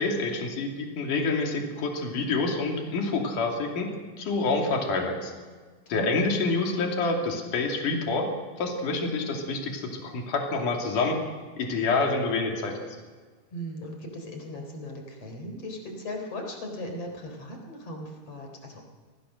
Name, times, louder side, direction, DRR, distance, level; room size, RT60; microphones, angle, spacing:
voice 1, 0.0-3.9 4.2-5.3 5.9-8.3 8.6-11.2 11.6-12.8, left 3 dB, 70° left, 1 dB, 4.3 m, -27 dB
voice 2, 5.9-6.2 13.5-18.9, left 1 dB, 45° left, 3 dB, 4.8 m, -38 dB
27.0 x 19.0 x 6.6 m, 1.4 s
omnidirectional pair, 3.8 m